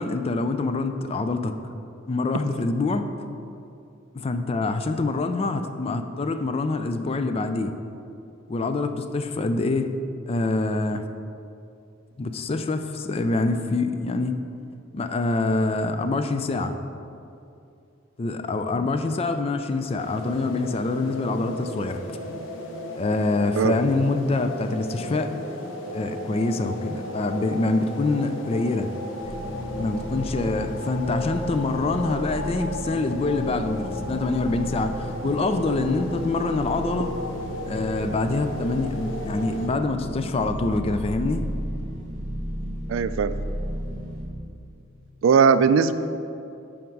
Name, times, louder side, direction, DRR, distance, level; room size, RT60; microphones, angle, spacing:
voice 1, 0.0-1.7 2.1-3.1 4.1-7.7 8.5-9.9 10.3-11.1 12.2-14.4 14.9-16.8 18.2-22.0 23.0-25.3 25.9-28.9 29.8-37.1 37.7-41.5, left 3 dB, 30° left, 9 dB, 0.3 m, -25 dB
sound 1, 20.0-39.7, left 1 dB, 75° left, 0.8 m, -35 dB
sound 2, 29.2-44.2, equal, 40° right, 1.5 m, -34 dB
voice 2, 42.9-43.3 45.2-45.9, right 6 dB, 80° right, 13 dB, 0.3 m, -18 dB
10.5 x 3.6 x 4.6 m, 2.6 s
head